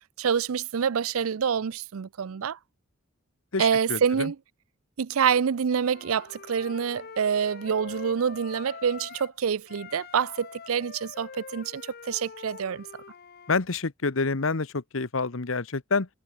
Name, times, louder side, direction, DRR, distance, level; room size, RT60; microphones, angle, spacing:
voice 1, 0.2-2.6 3.6-4.4 5.0-12.9, right 7 dB, 90° right, 0.5 m, -26 dB
voice 2, 3.5-4.3 13.5-16.1, left 4 dB, 70° left, 1.1 m, -28 dB
Wind instrument woodwind instrument, 5.7-9.4 9.7-13.6, left 5 dB, 50° left, 0.7 m, -44 dB
head